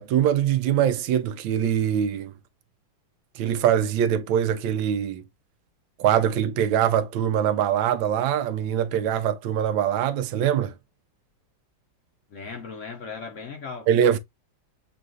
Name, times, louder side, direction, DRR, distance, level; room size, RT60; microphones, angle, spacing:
voice 1, 0.0-2.3 3.4-5.2 6.0-10.7 13.9-14.2, right 9 dB, 85° right, 1.3 m, -23 dB
voice 2, 12.3-13.9, left 5 dB, 55° left, 0.9 m, -37 dB
6.7 x 2.4 x 2.4 m
omnidirectional pair, 2.1 m